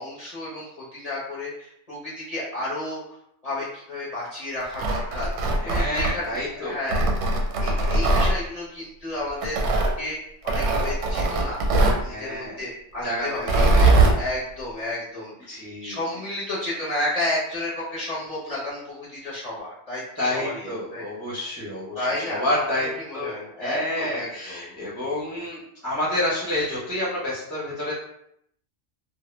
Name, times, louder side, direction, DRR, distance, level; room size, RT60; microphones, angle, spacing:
voice 1, 0.0-3.2 3.4-7.2 7.6-10.2 10.4-11.6 12.0-15.5 15.8-21.1 21.9-22.6 23.1-24.7, left 1 dB, 40° left, -8 dB, 0.6 m, -32 dB
Tearing, 4.6-6.4 6.9-8.3 9.4-9.9 10.5-12.0 13.4-14.2, right 2 dB, 90° right, 0.9 m, -20 dB
voice 2, 5.6-6.8 12.0-12.6 13.0-14.1 15.5-16.0 20.2-23.3 23.6-27.9, left 1 dB, 20° right, -8 dB, 0.4 m, -29 dB
2.1 x 2.0 x 3.0 m, 0.74 s
omnidirectional pair, 1.2 m